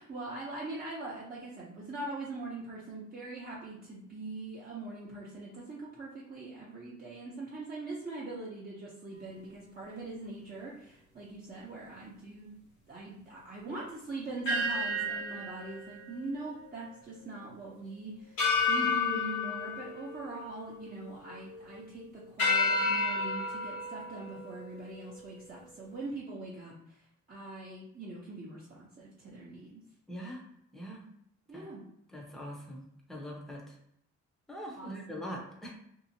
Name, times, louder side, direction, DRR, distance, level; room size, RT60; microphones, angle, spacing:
voice 1, 0.0-12.5 12.9-29.8 31.5-31.8 34.7-35.2, right 2 dB, 30° right, -7 dB, 0.7 m, -42 dB
sound 1, 14.5-16.9 17.2-17.4 18.4-20.9 21.3-21.8 22.4-25.2, left 3 dB, 75° left, 1.2 m, -31 dB
voice 2, 30.1-30.4 30.7-31.0 31.5-31.7 32.1-32.8 33.1-33.6 34.5-35.7, equal, ahead, -2 dB, 0.7 m, -42 dB
2.8 x 2.4 x 2.7 m, 0.73 s
cardioid pair, 90°, 30 cm